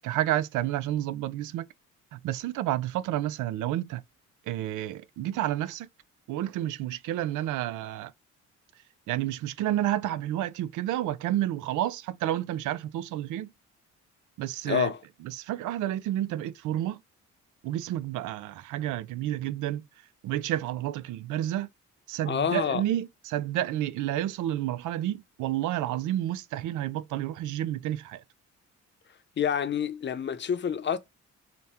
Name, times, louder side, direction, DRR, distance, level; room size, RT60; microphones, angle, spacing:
voice 1, 0.0-1.6 2.1-4.0 4.5-5.9 6.3-8.1 9.1-13.5 14.4-14.9 15.2-17.0 17.6-19.8 20.2-21.7 22.1-28.2, right 13 dB, 80° right, 0.5 m, -30 dB
voice 2, 14.7-15.0 22.3-22.8 29.4-31.0, left 8 dB, 40° left, 0.7 m, -27 dB
4.2 x 2.2 x 3.4 m
cardioid pair, 90°, 30 cm